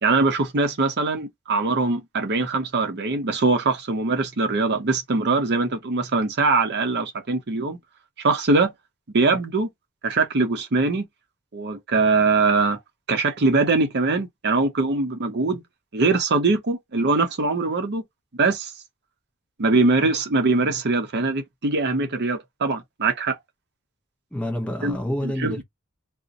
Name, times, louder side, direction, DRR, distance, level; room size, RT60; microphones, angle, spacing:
voice 1, 0.0-7.8 8.2-8.7 9.1-9.7 10.0-11.0 11.5-12.8 13.1-15.6 15.9-18.0 18.4-18.7 19.6-23.4 24.8-25.0 25.2-25.6, right 3 dB, 50° right, 0.6 m, -22 dB
voice 2, 24.3-25.6, equal, 5° left, 0.8 m, -28 dB
2.5 x 2.0 x 3.8 m
head